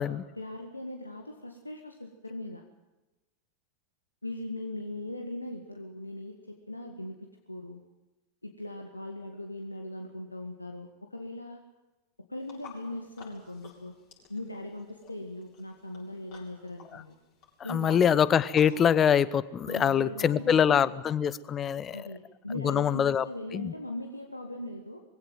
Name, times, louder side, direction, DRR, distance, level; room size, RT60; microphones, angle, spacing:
voice 1, 0.4-2.6 4.2-7.2 7.5-7.8 8.4-11.6 12.3-13.9 14.3-17.2 17.6-18.1 19.6-21.0 21.9-25.0, left 1 dB, 85° left, 4 dB, 1.8 m, -39 dB
sound 1, 12.4-18.9, left 5 dB, 45° left, 7.3 m, -53 dB
voice 2, 17.7-22.0 22.6-23.2 23.5-23.7, left 8 dB, 25° left, 19 dB, 0.9 m, -24 dB
22.0 x 16.5 x 9.2 m, 1.1 s
figure-of-eight pair, 90°, 0 cm